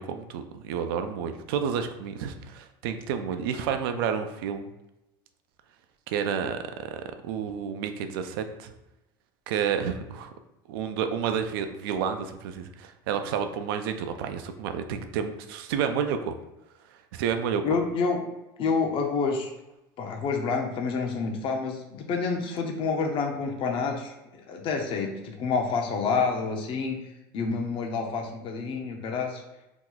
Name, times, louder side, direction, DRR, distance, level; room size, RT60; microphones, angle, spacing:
voice 1, 0.0-4.7 6.1-6.6 6.9-8.7 9.5-10.3 10.7-16.4 17.1-17.6, right 7 dB, 85° right, 8 dB, 0.4 m, -30 dB
voice 2, 17.6-18.2 18.6-19.5 20.0-27.0 27.3-29.4, left 4 dB, 50° left, 2 dB, 0.6 m, -28 dB
2.9 x 2.3 x 3.8 m, 0.94 s
supercardioid pair, 110°, 12 cm